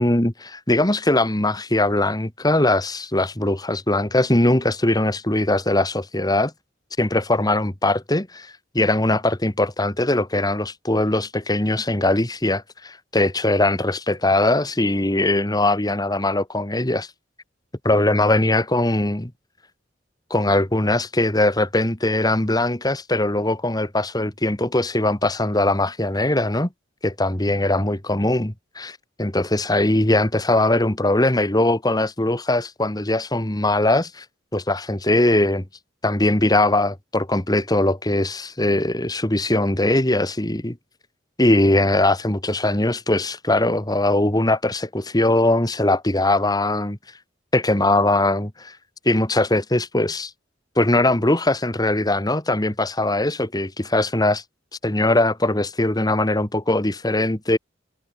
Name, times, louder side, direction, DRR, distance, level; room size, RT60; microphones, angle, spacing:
voice 1, 0.0-6.5 7.0-17.1 17.8-19.3 20.3-26.7 27.0-34.2 34.5-35.6 36.0-40.8 41.4-47.0 47.5-48.8 49.1-50.3 50.8-54.4 54.8-57.6, left 1 dB, 20° left, 2.3 m, -21 dB
head